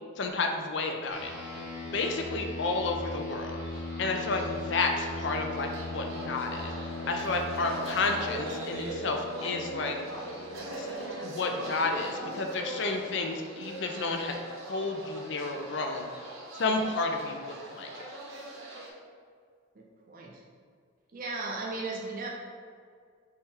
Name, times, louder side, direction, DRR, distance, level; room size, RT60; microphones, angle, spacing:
voice 1, 0.2-1.3 1.9-3.6 4.0-6.7 7.1-10.0 10.8-10.9 11.2-14.4 14.6-16.1 16.6-17.9, left 3 dB, 55° left, 4 dB, 0.5 m, -31 dB
sound 1, 1.1-10.8, left 2 dB, 5° right, 0.9 m, -39 dB
sound 2, 3.1-18.9, right 1 dB, 75° right, 1.0 m, -40 dB
voice 2, 19.8-20.4 21.1-22.3, right 3 dB, 40° right, -1 dB, 0.5 m, -36 dB
3.5 x 3.3 x 4.4 m, 2.1 s
head